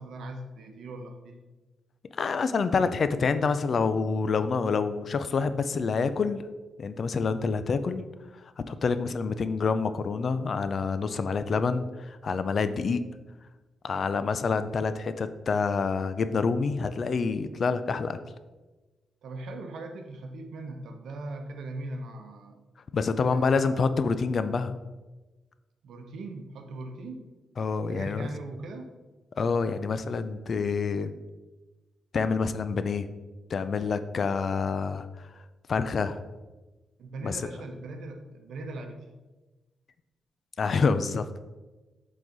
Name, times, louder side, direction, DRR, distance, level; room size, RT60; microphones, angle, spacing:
voice 1, 0.0-1.4 19.2-22.6 23.2-23.8 25.8-27.3 27.9-28.9 37.0-39.1, right 2 dB, 75° right, 5 dB, 0.8 m, -40 dB
voice 2, 2.2-6.4 6.8-8.0 8.7-13.0 13.8-18.2 22.9-24.8 27.6-28.3 29.4-31.1 32.1-33.1 33.5-35.1 35.7-36.2 37.2-37.4 40.6-41.2, left 5 dB, 45° left, 11 dB, 0.4 m, -27 dB
7.5 x 3.9 x 3.9 m, 1.2 s
wide cardioid pair, 135°, 0 cm